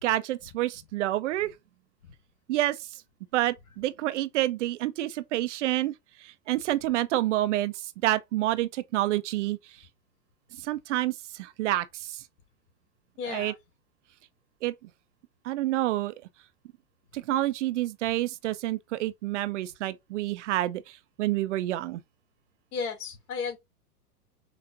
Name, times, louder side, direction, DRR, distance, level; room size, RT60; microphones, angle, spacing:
voice 1, 0.0-1.5 2.5-2.8 3.3-5.9 6.2-7.7 8.0-9.6 10.6-12.2 13.3-13.5 14.6-14.7 15.4-16.1 17.1-22.0, right 15 dB, 50° right, 0.5 m, -28 dB
voice 2, 13.2-13.6 22.7-23.6, left 5 dB, 70° left, 2.3 m, -34 dB
5.9 x 2.5 x 2.5 m
hypercardioid pair, 135°, 47 cm